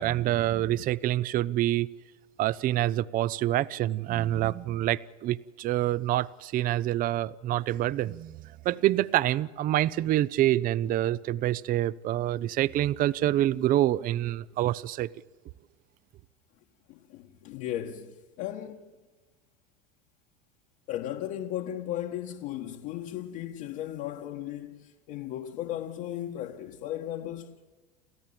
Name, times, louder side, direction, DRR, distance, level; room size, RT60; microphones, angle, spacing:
voice 1, 0.0-1.9 2.4-15.1, right 13 dB, 40° right, 0.6 m, -26 dB
voice 2, 16.9-18.9 20.9-27.6, left 12 dB, 65° left, 1.7 m, -36 dB
29.5 x 14.0 x 8.9 m
supercardioid pair, 110°, 21 cm